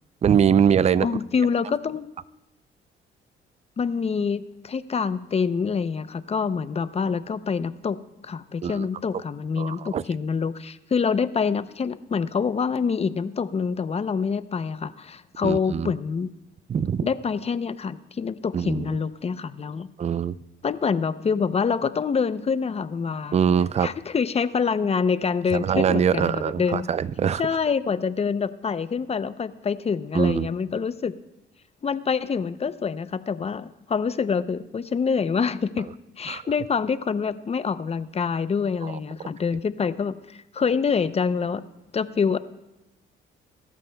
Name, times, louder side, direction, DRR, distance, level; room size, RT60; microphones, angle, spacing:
voice 1, 0.2-1.1 8.6-8.9 9.6-10.0 15.4-15.9 16.7-17.1 18.5-18.9 20.0-20.4 23.3-23.9 25.5-27.4 30.1-30.5 36.3-36.4 38.8-38.9, right 8 dB, 35° right, 17 dB, 0.4 m, -22 dB
voice 2, 1.0-2.1 3.8-16.3 17.0-19.9 20.6-23.4 23.8-26.9 27.4-31.1 31.8-35.9 36.2-41.7 41.9-42.4, left 5 dB, 30° left, 13 dB, 0.6 m, -26 dB
23.0 x 13.0 x 2.3 m, 0.97 s
cardioid pair, 90°, 20 cm